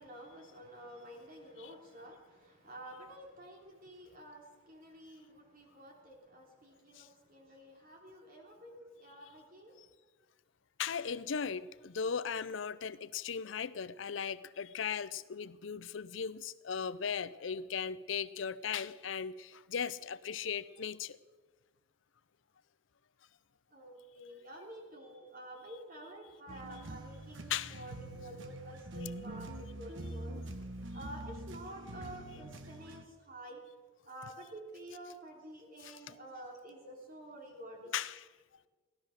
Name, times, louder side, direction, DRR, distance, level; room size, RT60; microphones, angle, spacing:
voice 1, 0.0-9.7 23.7-30.4 30.9-33.6 34.0-37.9, right 1 dB, 50° right, 0 dB, 3.3 m, -50 dB
voice 2, 10.8-21.2 27.5-27.8 35.8-36.2 37.9-38.2, left 7 dB, 70° left, 16 dB, 0.6 m, -37 dB
sound 1, 26.5-33.0, right 1 dB, 70° right, 1.2 m, -45 dB
16.5 x 12.0 x 6.5 m, 1.3 s
head